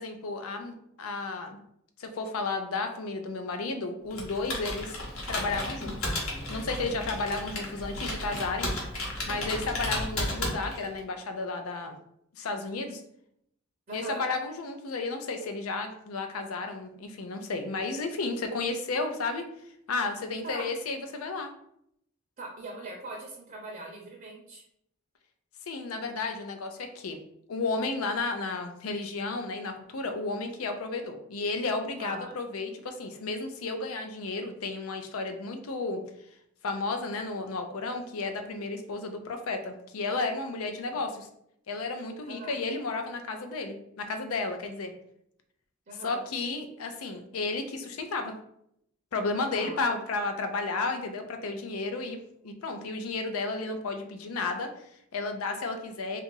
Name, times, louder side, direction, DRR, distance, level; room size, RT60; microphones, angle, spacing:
voice 1, 0.0-1.6 2.0-5.0 5.3-6.1 6.5-8.7 9.3-12.0 12.4-13.0 13.9-19.4 19.9-21.5 25.7-27.2 27.5-36.0 36.6-41.3 41.7-44.9 46.0-48.3 49.1-56.2, left 3 dB, 90° left, 6 dB, 0.5 m, -33 dB
Computer keyboard, 4.1-11.0, left 1 dB, 70° left, 0.9 m, -34 dB
voice 2, 13.9-14.2 20.4-20.6 22.4-24.6 32.0-32.3 40.8-41.0 42.3-42.5 45.9-46.2 49.5-49.8, right 2 dB, 40° right, -1 dB, 0.6 m, -41 dB
2.7 x 2.4 x 3.8 m, 0.74 s
head